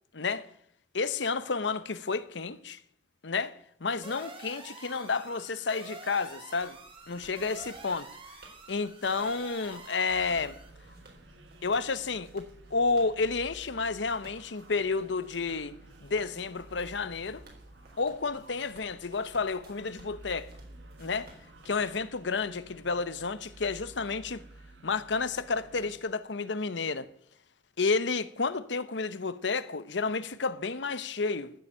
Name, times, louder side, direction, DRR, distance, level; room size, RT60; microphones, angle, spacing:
voice 1, 0.1-0.5 0.9-2.8 3.2-6.8 7.1-8.1 8.7-10.6 11.6-15.8 16.0-17.4 18.0-20.5 21.0-21.3 21.6-24.4 24.8-27.1 27.8-31.5, left 4 dB, 70° left, 0.9 m, -31 dB
sound 1, 4.0-10.7, right 3 dB, 30° right, 2.2 m, -47 dB
sound 2, 6.0-22.6, right 2 dB, 60° right, 4.0 m, -58 dB
sound 3, 10.1-26.0, right 2 dB, 80° right, 2.2 m, -53 dB
15.0 x 7.2 x 9.9 m
head